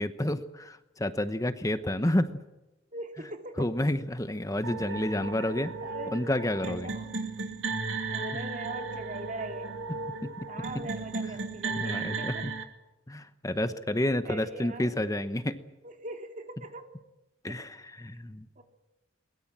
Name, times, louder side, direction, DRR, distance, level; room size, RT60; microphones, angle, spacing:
voice 1, 0.0-2.3 3.6-5.7 6.1-6.9 10.2-10.5 11.8-12.5 13.1-15.6 17.4-18.5, left 1 dB, 20° left, 10 dB, 1.0 m, -30 dB
voice 2, 2.9-3.7 5.8-6.2 6.6-7.1 8.1-9.7 10.5-12.5 14.2-14.9 15.8-16.9 17.5-17.7 18.6-18.7, right 2 dB, 45° right, 4 dB, 3.0 m, -41 dB
sound 1, 4.6-12.6, right 4 dB, 90° right, 2.9 m, -35 dB
22.5 x 21.5 x 7.5 m, 1.0 s
head